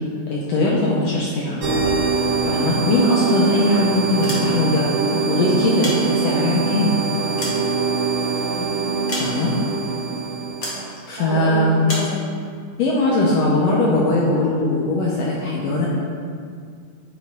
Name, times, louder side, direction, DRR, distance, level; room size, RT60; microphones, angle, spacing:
voice 1, 0.3-1.6 2.4-7.0 9.2-9.5 11.1-11.8 12.8-15.9, left 2 dB, 75° left, -4 dB, 1.5 m, -20 dB
sound 1, 1.6-11.0, right 4 dB, 55° right, 2.6 m, -23 dB
sound 2, 4.2-4.9 5.6-6.6 7.1-8.3 9.1-9.7 10.6-10.9 11.8-12.2, left 1 dB, 55° left, 0.9 m, -31 dB
voice 2, 8.2-8.7 10.8-12.2, right 1 dB, 85° right, -3 dB, 1.3 m, -30 dB
8.6 x 3.0 x 4.6 m, 2.2 s
omnidirectional pair, 3.6 m